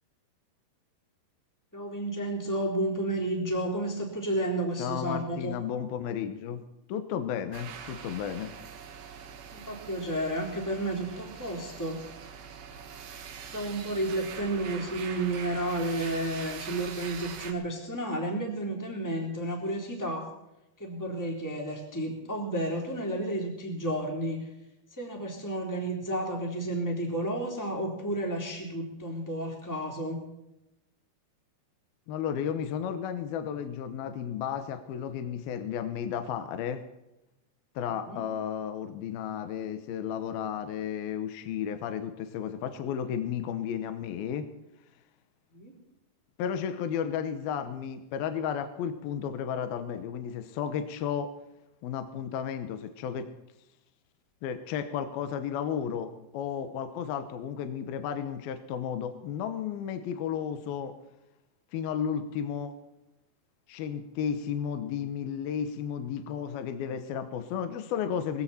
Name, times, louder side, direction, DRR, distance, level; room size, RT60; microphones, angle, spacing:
voice 1, 1.7-5.6 9.5-12.0 13.5-20.3 20.8-24.5 24.9-30.2 38.0-38.2 45.5-45.7, right 1 dB, 5° left, 0 dB, 3.0 m, -32 dB
voice 2, 4.8-6.6 6.9-8.5 32.1-36.8 37.8-44.5 46.4-51.3 51.8-53.3 54.4-60.9 61.7-62.7 63.7-68.4, left 8 dB, 75° left, 9 dB, 2.7 m, -33 dB
sound 1, 7.5-17.5, right 7 dB, 80° right, 3.7 m, -43 dB
20.5 x 16.0 x 4.3 m, 0.93 s
omnidirectional pair, 4.8 m